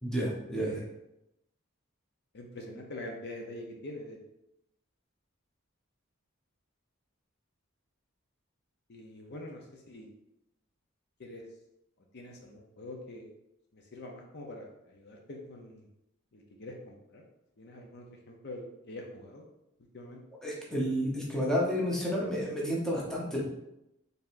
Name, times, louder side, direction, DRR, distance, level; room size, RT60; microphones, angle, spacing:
voice 1, 0.0-0.8 20.4-23.4, equal, 5° left, -5 dB, 0.8 m, -30 dB
voice 2, 0.5-0.9 2.3-4.2 8.9-10.1 11.2-11.4 12.1-13.3 13.7-15.9 16.3-17.2 17.6-19.4 19.9-20.2, left 1 dB, 55° left, 1 dB, 0.6 m, -45 dB
4.7 x 3.4 x 2.5 m, 0.86 s
head